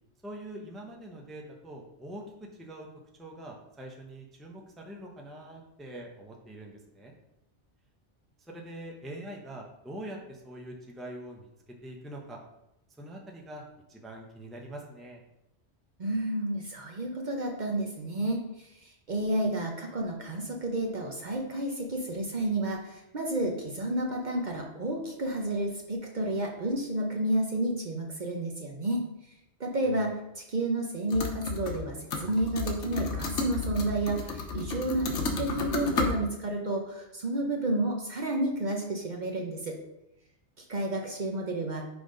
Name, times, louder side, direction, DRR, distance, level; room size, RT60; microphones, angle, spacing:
voice 1, 0.2-2.9 3.2-7.1 8.4-12.4 13.0-13.6 13.9-15.2 29.8-30.1, right 1 dB, ahead, 0 dB, 0.6 m, -44 dB
voice 2, 16.0-29.0 29.6-39.8 40.6-41.8, right 1 dB, 45° right, 1 dB, 0.8 m, -31 dB
sound 1, 31.1-31.8 32.1-36.1, left 4 dB, 90° left, 1.2 m, -32 dB
6.0 x 3.5 x 5.1 m, 0.88 s
omnidirectional pair, 1.2 m